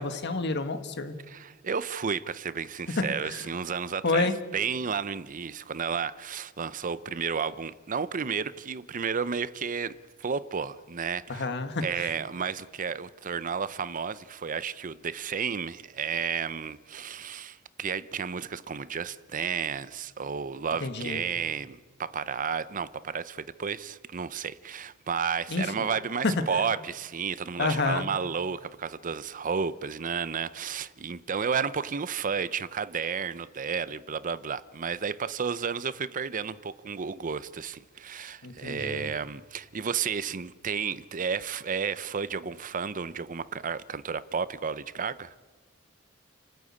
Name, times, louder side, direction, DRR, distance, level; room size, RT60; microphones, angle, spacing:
voice 1, 0.0-1.1 3.0-3.4 4.0-4.4 11.3-12.1 20.8-21.2 25.5-25.9 26.2-26.3 27.6-28.1 38.4-39.1, left 3 dB, 55° left, 1.7 m, -29 dB
voice 2, 1.3-4.3 4.5-11.5 11.8-45.4, right 6 dB, 40° right, 0.6 m, -32 dB
29.5 x 14.0 x 8.6 m
head